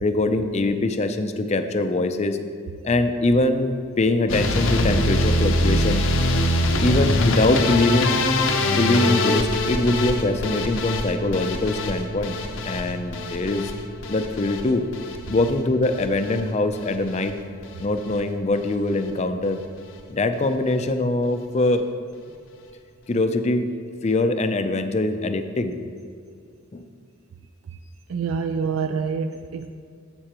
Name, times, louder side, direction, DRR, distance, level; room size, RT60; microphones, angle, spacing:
voice 1, 0.0-2.4 2.8-6.0 6.8-8.1 8.7-12.4 12.7-13.7 14.1-14.8 15.3-17.3 17.8-19.6 20.1-21.9 23.1-23.7 24.0-25.8 26.7-26.8, left 2 dB, 30° left, 8 dB, 0.4 m, -23 dB
sound 1, 4.3-16.4 16.7-17.3 17.6-18.2 18.5-18.8 19.1-19.2 19.4-19.5, left 1 dB, 65° left, 0.7 m, -24 dB
voice 2, 28.1-29.7, right 5 dB, 85° right, 7 dB, 0.4 m, -26 dB
11.5 x 7.6 x 2.9 m, 2.2 s
head